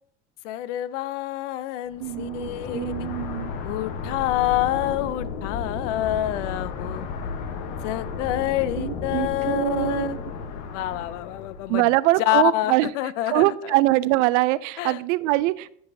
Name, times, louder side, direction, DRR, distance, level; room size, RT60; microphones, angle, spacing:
voice 1, 0.4-3.1 3.6-7.1 7.8-10.2 10.7-11.9 12.2-13.8 14.8-15.0, left 14 dB, 85° left, 16 dB, 0.6 m, -27 dB
sound 1, 1.9-11.8, left 5 dB, 65° left, 1.1 m, -33 dB
voice 2, 2.0-3.5 8.8-10.2 11.7-12.9 13.3-15.7, right 18 dB, 80° right, 18 dB, 0.5 m, -23 dB
13.0 x 5.5 x 2.7 m, 0.68 s
supercardioid pair, 90°, 36 cm